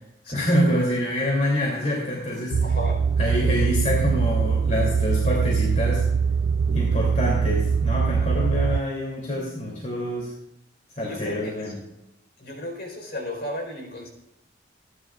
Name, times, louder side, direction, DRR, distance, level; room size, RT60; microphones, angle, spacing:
voice 1, 0.3-2.6 3.2-6.0 6.7-10.3 11.0-11.8, left 1 dB, 40° left, -3 dB, 2.9 m, -26 dB
sound 1, 2.5-8.8, right 6 dB, 70° right, 0.4 m, -22 dB
voice 2, 2.6-3.0 11.0-11.7 12.4-14.1, left 1 dB, 55° left, 1 dB, 4.3 m, -34 dB
26.5 x 11.0 x 2.5 m, 0.84 s
head